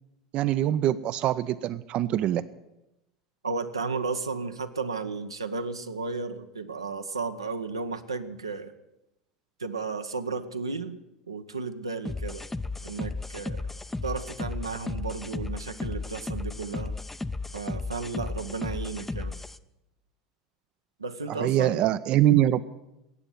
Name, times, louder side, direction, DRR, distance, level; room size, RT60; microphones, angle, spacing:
voice 1, 0.3-2.4 21.3-22.6, right 12 dB, 45° right, 13 dB, 0.5 m, -24 dB
voice 2, 3.4-8.7 9.6-11.0 11.3-12.4 12.8-13.6 14.0-17.0 17.5-19.4 21.0-21.8, right 4 dB, 90° right, 7 dB, 0.8 m, -33 dB
sound 1, 12.1-19.6, left 3 dB, 10° left, 0.6 m, -34 dB
14.0 x 8.9 x 9.5 m, 0.91 s
figure-of-eight pair, 75°, 3 cm